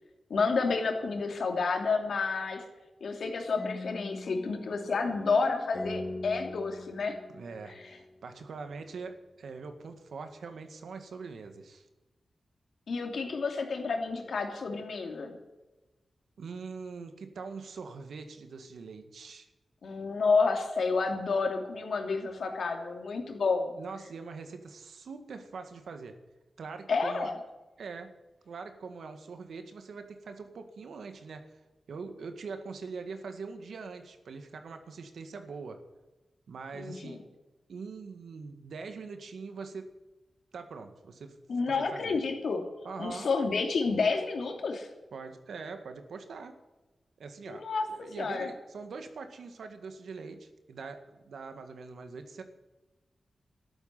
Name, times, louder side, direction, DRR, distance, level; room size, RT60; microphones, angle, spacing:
voice 1, 0.3-2.6 3.0-7.1 7.7-7.8 12.9-15.4 19.8-23.7 26.9-27.4 36.7-37.2 41.5-42.6 43.0-44.9 47.5-47.9 48.2-48.5, left 4 dB, 80° left, 3 dB, 3.0 m, -30 dB
sound 1, 3.6-8.5, left 2 dB, 30° left, 2.6 m, -42 dB
voice 2, 7.3-11.9 16.4-19.5 23.7-26.2 26.6-27.3 27.8-28.1 28.5-31.6 31.9-35.8 36.5-37.3 37.7-39.9 40.5-41.4 41.7-42.1 42.8-43.3 45.1-46.6 47.2-52.4, right 4 dB, 90° right, 7 dB, 1.9 m, -43 dB
13.0 x 12.0 x 9.0 m, 1.1 s
wide cardioid pair, 85°, 0 cm